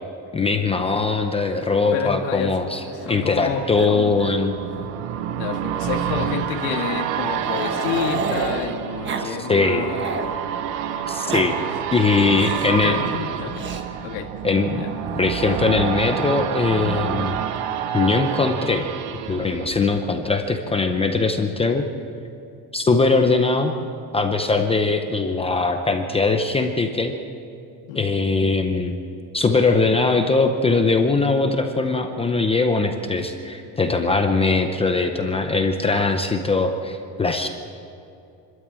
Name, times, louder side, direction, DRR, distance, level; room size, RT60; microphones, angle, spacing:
voice 1, 0.3-4.6 9.2-9.8 11.1-11.6 11.9-13.0 14.4-14.8 15.2-17.4 17.9-18.8 19.3-21.8 22.7-23.7 24.1-27.2 27.9-29.0 29.3-37.5, left 3 dB, 10° left, 5 dB, 0.6 m, -21 dB
Growling, 1.6-3.5 3.8-4.4 4.7-4.8 5.8-8.7 9.0-9.3 9.6-10.3 11.0-11.5 12.3-12.8 13.6-13.8 15.0-15.6, right 4 dB, 25° right, 1.2 m, -32 dB
voice 2, 1.9-2.5 3.1-4.2 5.4-10.0 11.2-11.7 12.3-13.7 14.0-14.3 14.8-14.9 27.9-28.0, left 8 dB, 75° left, 3 dB, 2.1 m, -30 dB
sound 1, 2.7-20.5 20.9-21.0, right 9 dB, 85° right, 1.2 m, -29 dB
27.0 x 13.0 x 7.6 m, 2.7 s
cardioid pair, 165°, 47 cm